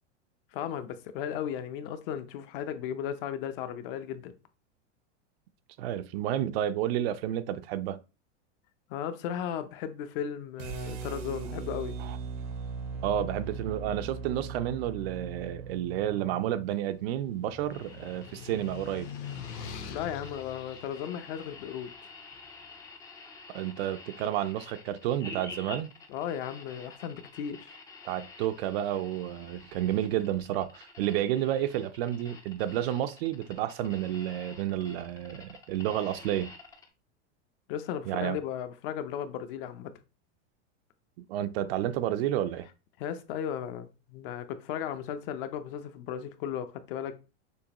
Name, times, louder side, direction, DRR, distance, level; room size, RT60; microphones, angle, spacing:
voice 1, 0.5-4.3 8.9-11.9 19.9-21.9 26.1-27.8 37.7-39.9 43.0-47.2, left 9 dB, 50° left, 0.6 m, -35 dB
voice 2, 5.8-8.0 12.0-12.2 13.0-19.1 23.5-25.9 28.0-36.5 38.1-38.4 41.3-42.7, right 12 dB, 60° right, 0.5 m, -31 dB
sound 1, 10.6-16.7, right 5 dB, 90° right, 1.2 m, -39 dB
sound 2, 16.2-22.5, left 7 dB, 65° left, 1.2 m, -44 dB
sound 3, 17.7-36.9, left 3 dB, 10° left, 0.4 m, -49 dB
6.3 x 2.9 x 2.9 m
supercardioid pair, 155°, 35 cm